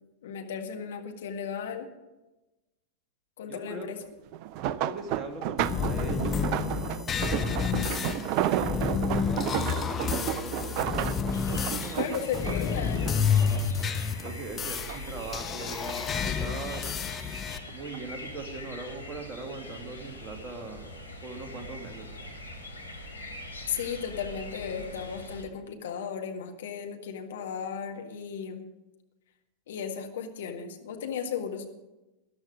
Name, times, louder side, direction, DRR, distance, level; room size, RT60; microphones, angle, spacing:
voice 1, 0.2-1.9 3.4-4.0 12.0-13.1 23.7-28.6 29.7-31.7, left 7 dB, 60° left, 4 dB, 1.7 m, -35 dB
voice 2, 3.5-3.9 4.6-6.7 7.1-10.8 11.5-13.7 14.2-16.8 17.7-20.9 21.2-22.1, right 3 dB, 25° right, 3 dB, 2.2 m, -40 dB
sound 1, 4.3-13.9 14.2-15.2 15.6-16.9 17.7-18.0 18.4-18.5, right 12 dB, 45° right, 0.5 m, -32 dB
sound 2, 5.6-17.6, left 6 dB, 25° left, 0.9 m, -30 dB
sound 3, 11.3-25.4, left 1 dB, 85° left, 1.9 m, -43 dB
13.5 x 11.5 x 5.1 m, 1.0 s
figure-of-eight pair, 90°, 0 cm